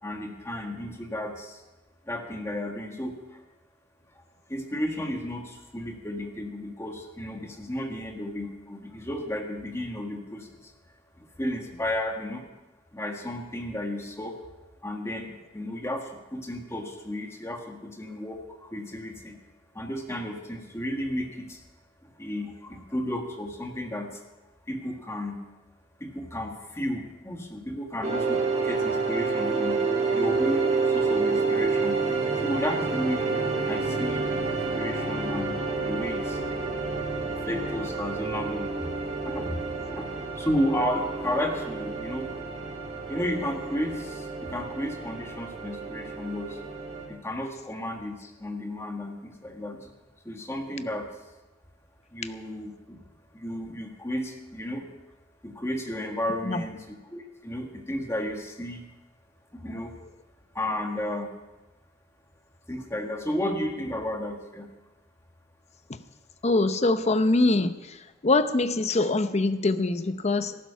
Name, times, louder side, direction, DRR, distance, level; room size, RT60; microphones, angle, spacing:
voice 1, 0.0-1.6 2.1-3.1 4.5-10.5 11.4-12.4 12.9-14.3 14.8-19.4 19.7-21.6 22.2-24.1 24.7-25.4 26.0-29.8 30.1-32.0 32.4-33.3 33.6-34.3 34.7-35.5 35.8-36.4 37.5-38.9 39.2-39.6 39.9-40.1 40.4-42.3 43.1-46.6 47.1-49.8 50.2-51.1 52.1-53.0 53.4-54.9 55.4-58.8 59.5-59.9 60.5-61.3 62.7-64.7, left 1 dB, 15° left, 2 dB, 1.7 m, -33 dB
sound 1, 28.0-47.1, right 4 dB, 35° right, 2.3 m, -29 dB
voice 2, 66.4-67.8 68.2-70.6, left 2 dB, 35° left, 11 dB, 0.7 m, -23 dB
14.5 x 12.0 x 5.6 m, 1.1 s
head